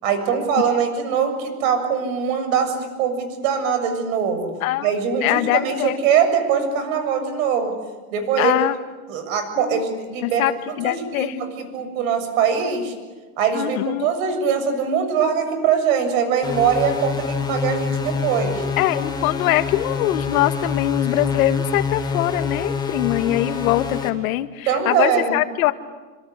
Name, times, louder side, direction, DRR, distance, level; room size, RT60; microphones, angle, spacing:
voice 1, 0.0-4.5 4.8-7.7 8.1-8.6 9.1-12.9 13.4-18.7 24.7-25.4, right 7 dB, 70° right, 8 dB, 7.3 m, -22 dB
voice 2, 4.6-4.9 5.2-6.0 8.4-8.8 9.6-9.8 10.2-10.5 10.8-11.4 13.5-14.1 18.8-25.7, left 15 dB, 80° left, 9 dB, 2.0 m, -22 dB
sound 1, 16.4-24.1, left 5 dB, 10° left, 2.8 m, -26 dB
27.5 x 26.0 x 8.4 m, 1.3 s
supercardioid pair, 150°, 42 cm